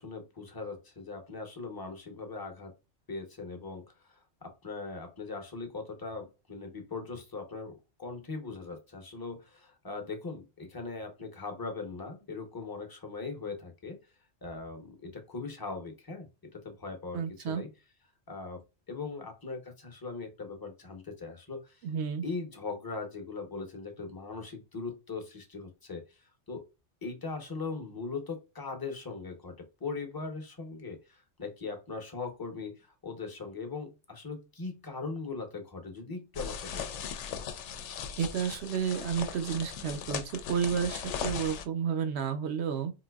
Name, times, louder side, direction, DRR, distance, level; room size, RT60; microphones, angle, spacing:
voice 1, 0.0-2.7 3.1-14.0 14.4-17.7 18.3-18.6 18.9-21.9 22.2-26.7 27.0-37.0, left 4 dB, 25° left, 0.6 m, -40 dB
voice 2, 17.1-17.6 21.8-22.2 38.2-42.9, right 7 dB, 70° right, 0.8 m, -31 dB
sound 1, 36.3-41.6, left 7 dB, 90° left, 0.9 m, -38 dB
3.8 x 2.7 x 2.2 m
omnidirectional pair, 1.2 m